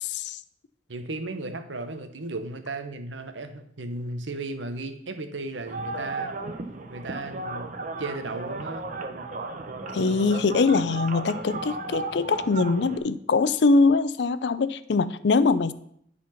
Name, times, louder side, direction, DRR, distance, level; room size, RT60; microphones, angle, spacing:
voice 1, 0.9-6.3 6.9-7.7 8.0-8.9, right 2 dB, 90° right, 8 dB, 1.0 m, -35 dB
sound 1, 5.7-13.0, right 3 dB, 45° right, 0.9 m, -35 dB
voice 2, 9.9-15.7, left 4 dB, 65° left, 14 dB, 0.5 m, -22 dB
10.5 x 4.3 x 5.7 m, 0.69 s
head